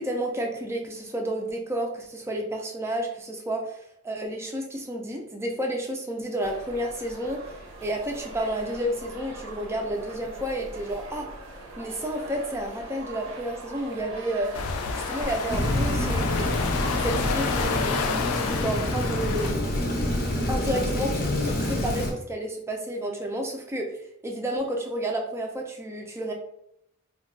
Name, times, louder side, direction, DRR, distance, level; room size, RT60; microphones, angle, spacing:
voice 1, 0.0-3.8 4.0-7.4 7.8-11.3 11.8-14.5 14.9-16.7 17.0-19.5 20.5-23.9 24.2-26.3, right 1 dB, 10° right, 2 dB, 0.4 m, -31 dB
sound 1, 6.4-18.9, right 2 dB, 75° right, 0.7 m, -41 dB
sound 2, 14.5-19.5, left 5 dB, 85° left, 0.3 m, -29 dB
Rain, 15.5-22.1, left 1 dB, 45° left, 0.6 m, -27 dB
2.3 x 2.2 x 3.6 m, 0.76 s
head